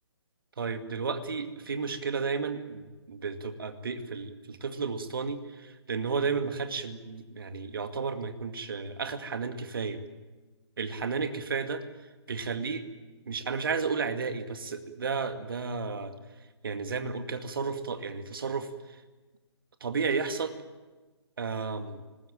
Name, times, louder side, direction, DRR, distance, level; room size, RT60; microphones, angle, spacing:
voice 1, 0.6-10.0 10.8-11.8 12.3-12.8 13.3-16.1 16.6-18.7 19.8-20.6 21.4-22.0, right 5 dB, 55° right, 8 dB, 2.2 m, -32 dB
25.5 x 20.0 x 9.1 m, 1.2 s
figure-of-eight pair, 135°, 14 cm